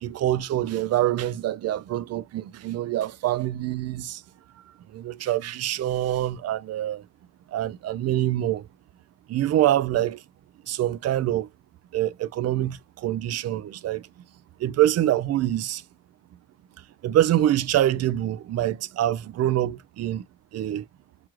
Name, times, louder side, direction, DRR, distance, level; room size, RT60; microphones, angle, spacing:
voice 1, 0.0-4.2 4.9-7.0 7.5-8.6 9.3-10.2 10.7-11.5 11.9-14.1 14.6-15.8 17.0-20.2 20.5-20.8, right 13 dB, 55° right, 0.5 m, -25 dB
6.0 x 2.4 x 3.0 m
cardioid pair, 90°, 30 cm